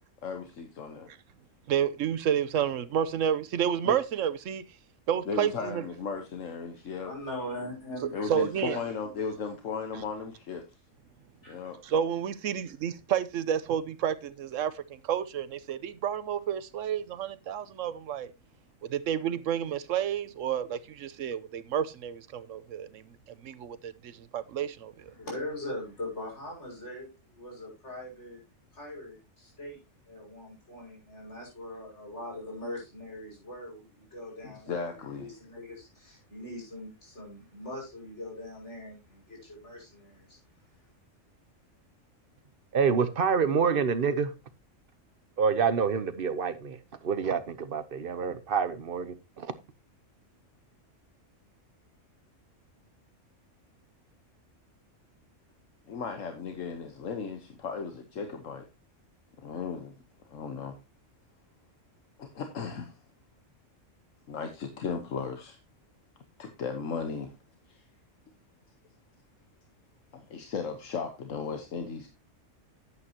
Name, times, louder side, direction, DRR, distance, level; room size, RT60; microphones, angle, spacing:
voice 1, 0.2-1.1 3.8-4.0 5.3-7.1 8.1-10.6 11.5-11.8 34.4-35.3 55.9-58.6 59.4-59.9 60.3-60.8 62.2-63.0 64.3-65.6 66.4-67.3 67.7-67.8 70.1-72.1, left 5 dB, 80° left, 1.5 m, -36 dB
voice 2, 1.7-4.6 5.1-5.8 8.3-8.8 11.8-18.3 18.9-23.0 23.4-25.1, right 9 dB, 80° right, 1.1 m, -30 dB
voice 3, 6.9-8.3 11.4-11.7 25.1-28.4 28.7-29.8 30.1-40.4, left 1 dB, 65° left, 6.1 m, -41 dB
voice 4, 42.7-44.3 45.4-46.8 47.0-49.5, right 6 dB, 50° right, 1.0 m, -27 dB
10.5 x 8.9 x 2.9 m
omnidirectional pair, 1.3 m